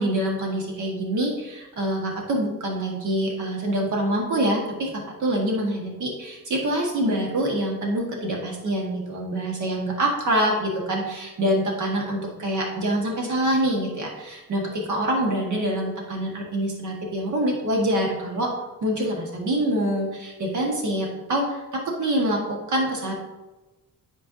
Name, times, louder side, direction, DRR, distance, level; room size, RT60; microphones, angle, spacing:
voice 1, 0.0-18.5 18.8-23.1, right 1 dB, 60° right, -1 dB, 1.6 m, -25 dB
10.5 x 4.6 x 2.7 m, 1.1 s
cardioid pair, 125°, 34 cm